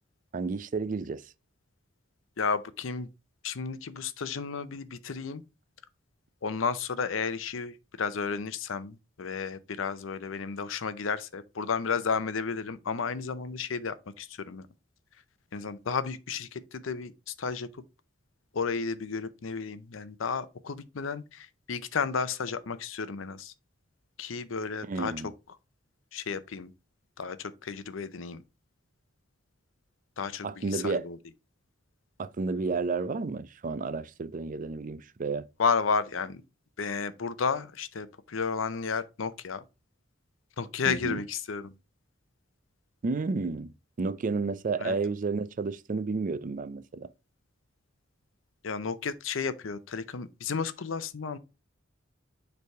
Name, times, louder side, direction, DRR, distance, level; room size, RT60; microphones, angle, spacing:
voice 1, 0.3-1.2 24.9-25.3 30.4-31.1 32.2-35.4 40.9-41.2 43.0-47.1, right 4 dB, 40° right, 0.4 m, -31 dB
voice 2, 2.4-3.1 3.4-5.4 6.4-14.7 15.5-17.7 18.5-23.5 24.2-25.1 26.1-26.7 27.2-28.4 30.2-31.2 35.6-36.4 36.8-39.6 40.6-41.7 44.8-45.0 48.6-51.4, left 5 dB, 90° left, 0.6 m, -32 dB
6.8 x 3.4 x 4.6 m
head